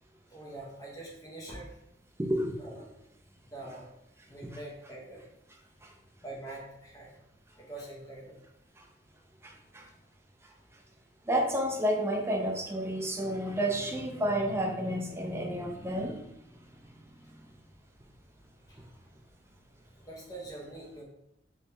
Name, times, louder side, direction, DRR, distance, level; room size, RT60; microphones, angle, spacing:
voice 1, 0.3-1.7 2.6-2.8 3.4-3.9 4.3-5.3 6.2-7.1 7.6-8.4 18.7-18.8 20.0-21.0, right 2 dB, 20° left, -3 dB, 0.8 m, -44 dB
voice 2, 2.2-2.6 5.8-5.9 9.4-9.9 11.3-16.3, equal, 15° right, 1 dB, 0.4 m, -30 dB
3.6 x 3.1 x 2.7 m, 0.82 s
head